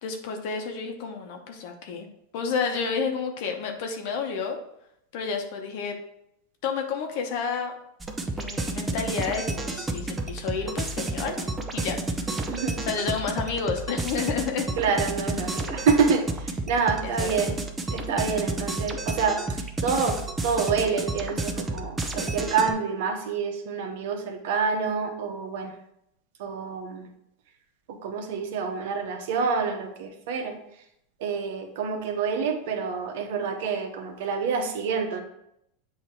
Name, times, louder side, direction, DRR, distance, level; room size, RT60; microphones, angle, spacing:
voice 1, 0.0-2.1 2.3-4.6 5.1-6.0 6.6-7.8 8.4-11.3 11.7-12.0 12.9-14.7 17.0-17.3, left 5 dB, 60° left, 3 dB, 1.0 m, -30 dB
sound 1, 8.0-22.7, right 2 dB, 15° right, 0.7 m, -31 dB
voice 2, 12.5-12.8 14.8-17.6 17.9-25.7 26.4-27.1 27.9-30.6 31.2-35.2, right 5 dB, 70° right, 5 dB, 1.0 m, -27 dB
7.8 x 2.9 x 4.4 m, 0.79 s
supercardioid pair, 125°, 0 cm